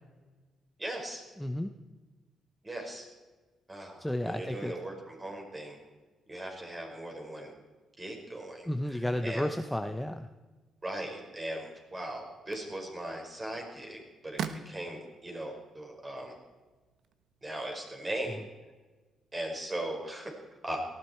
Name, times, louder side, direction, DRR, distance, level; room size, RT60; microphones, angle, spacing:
voice 1, 0.8-1.2 2.6-3.1 3.7-5.8 6.3-7.5 8.0-9.5 10.8-16.4 17.4-18.4 19.3-20.3 20.6-20.8, right 1 dB, 20° right, 1 dB, 5.4 m, -39 dB
voice 2, 1.4-1.7 4.0-4.7 8.7-10.3, left 1 dB, 5° left, 7 dB, 0.9 m, -32 dB
sound 1, 11.5-17.7, right 7 dB, 75° right, 1.2 m, -45 dB
18.5 x 14.5 x 4.6 m, 1.3 s
cardioid pair, 90°, 0 cm